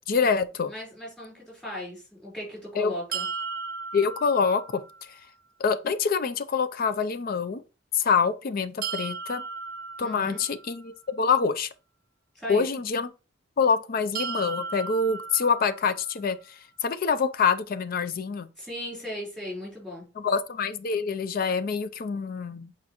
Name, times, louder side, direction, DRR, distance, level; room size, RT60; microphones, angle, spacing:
voice 1, 0.1-0.7 2.8-2.9 3.9-4.8 5.6-7.6 7.9-9.4 10.0-11.7 12.5-13.1 13.6-18.5 20.2-22.7, left 5 dB, 50° left, 0.4 m, -26 dB
voice 2, 0.7-3.3 10.0-10.4 12.4-12.6 18.6-20.3, left 1 dB, 5° left, 3.9 m, -37 dB
sound 1, 3.1-5.1 8.8-10.9 14.1-16.2, right 5 dB, 50° right, 0.6 m, -36 dB
8.4 x 4.3 x 2.9 m
head